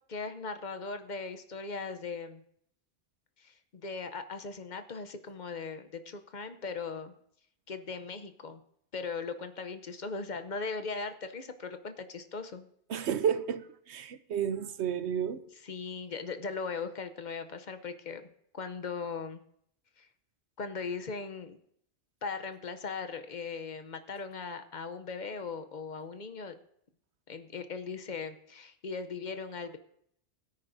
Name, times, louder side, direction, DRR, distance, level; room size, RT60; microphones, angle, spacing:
voice 1, 0.1-2.4 3.4-7.1 7.7-8.6 8.9-12.7 15.6-18.3 18.5-19.4 20.0-20.1 20.6-21.6 22.2-26.6 27.3-29.8, left 4 dB, 50° left, 0.8 m, -39 dB
voice 2, 12.9-15.4, right 8 dB, 80° right, 1.0 m, -31 dB
21.5 x 9.7 x 2.6 m
omnidirectional pair, 1.1 m